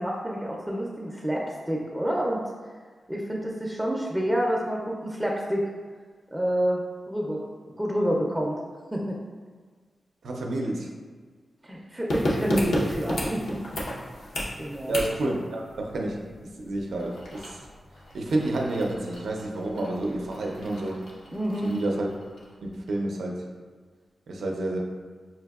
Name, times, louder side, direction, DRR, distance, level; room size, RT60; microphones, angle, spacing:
voice 1, 0.0-2.4 3.1-5.7 6.3-6.8 7.1-7.4 7.8-8.6 8.9-9.2 11.6-13.6 14.6-14.9 21.3-21.8, equal, 10° right, -2 dB, 0.4 m, -28 dB
voice 2, 10.2-10.9 14.9-16.2 16.6-17.6 18.1-21.0 21.6-22.1 22.7-23.5 24.3-24.8, right 2 dB, 85° right, -1 dB, 0.5 m, -29 dB
sound 1, 12.1-22.6 22.9-23.0, left 1 dB, 90° left, 0.7 m, -34 dB
5.7 x 2.6 x 2.3 m, 1.5 s
wide cardioid pair, 100°, 0 cm